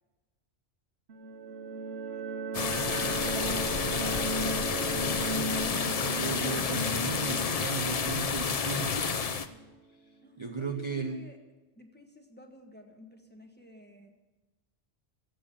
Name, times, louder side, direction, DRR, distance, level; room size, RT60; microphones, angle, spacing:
sound 1, 1.1-9.7, right 3 dB, 65° right, 1.2 m, -36 dB
Rushing Stream Water, 2.5-9.5, left 6 dB, 40° left, 0.6 m, -30 dB
voice 1, 5.1-9.4 10.4-11.2, right 4 dB, 30° right, 4 dB, 0.8 m, -36 dB
voice 2, 10.2-11.4 11.8-14.1, left 1 dB, 10° left, 3 dB, 1.5 m, -53 dB
14.5 x 8.0 x 8.6 m, 1.1 s
omnidirectional pair, 1.2 m